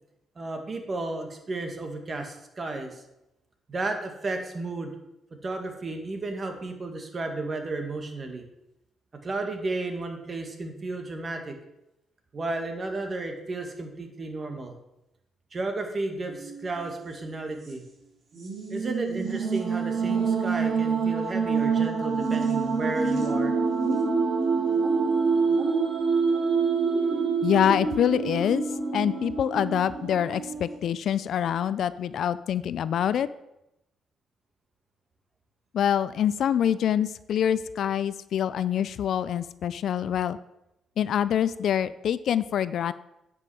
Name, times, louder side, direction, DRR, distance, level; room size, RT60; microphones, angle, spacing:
voice 1, 0.3-3.0 3.7-4.9 5.3-8.4 9.1-11.6 12.3-14.7 15.5-17.8 18.7-23.6, right 2 dB, 35° right, 4 dB, 1.6 m, -33 dB
sound 1, 16.3-16.9 17.2-17.3 18.3-30.8, right 5 dB, 50° right, 2.1 m, -26 dB
voice 2, 27.4-28.7 28.9-33.3 35.7-40.4 41.0-42.9, left 9 dB, 65° left, 16 dB, 0.3 m, -25 dB
9.3 x 5.5 x 4.8 m, 0.87 s
cardioid pair, 90°, 0 cm